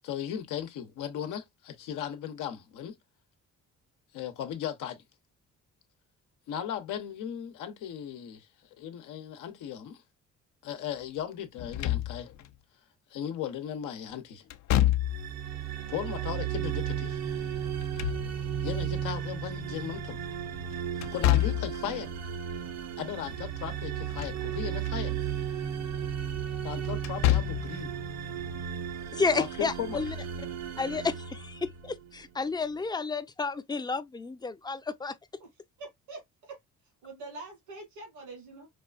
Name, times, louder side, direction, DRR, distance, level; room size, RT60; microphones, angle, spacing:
voice 1, 0.0-2.9 4.1-5.0 6.5-8.5 8.8-10.0 10.6-12.3 13.1-14.4 15.9-17.2 18.6-20.2 21.1-22.1 23.0-25.2 26.6-27.9 29.4-30.0, left 9 dB, 90° left, 0.8 m, -37 dB
Slam / Thump thud, 11.6-12.5 14.5-15.4 17.6-18.7 21.0-21.8 23.9-24.5 24.9-25.0 27.0-27.8, left 14 dB, 65° left, 0.5 m, -27 dB
sound 1, 15.0-32.1, right 9 dB, 60° right, 0.7 m, -35 dB
voice 2, 29.1-30.2 30.8-35.2, left 4 dB, 15° left, 0.4 m, -31 dB
voice 3, 35.8-36.6 37.0-38.7, right 3 dB, 85° right, 2.3 m, -44 dB
4.8 x 2.4 x 2.4 m
cardioid pair, 90°, 30 cm